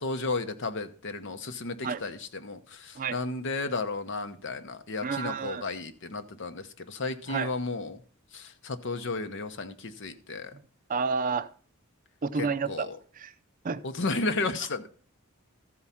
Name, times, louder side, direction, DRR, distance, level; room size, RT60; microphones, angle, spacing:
voice 1, 0.0-8.0 8.3-10.5 12.3-13.0 13.8-14.9, left 3 dB, 60° left, 0.9 m, -33 dB
voice 2, 5.0-5.6 7.3-7.5 10.9-11.5 12.2-12.9 13.2-13.3 13.6-13.8, right 5 dB, 40° right, 0.4 m, -30 dB
14.0 x 4.8 x 5.6 m
head